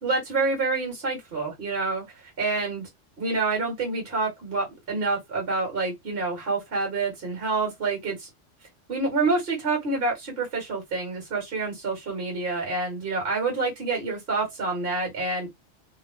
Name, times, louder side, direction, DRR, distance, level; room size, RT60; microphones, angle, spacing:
voice 1, 0.0-2.1 2.4-2.9 3.2-8.3 8.9-15.5, right 3 dB, 55° right, 1.3 m, -27 dB
2.6 x 2.1 x 3.4 m
omnidirectional pair, 1.3 m